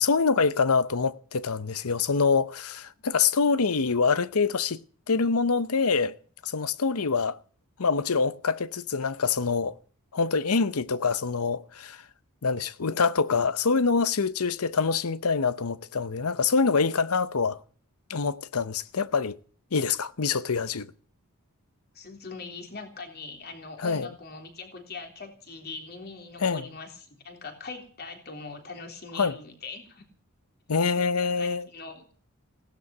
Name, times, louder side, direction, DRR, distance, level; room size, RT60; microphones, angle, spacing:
voice 1, 0.0-4.8 5.1-6.1 6.4-7.4 7.8-9.8 10.1-12.0 12.4-17.6 18.1-19.4 19.7-20.9 23.8-24.1 26.4-26.7 29.2-29.4 30.7-31.7, left 5 dB, 80° left, 0.8 m, -25 dB
voice 2, 21.9-30.0 31.0-32.1, left 4 dB, 45° left, 3.6 m, -41 dB
17.0 x 11.5 x 7.1 m
head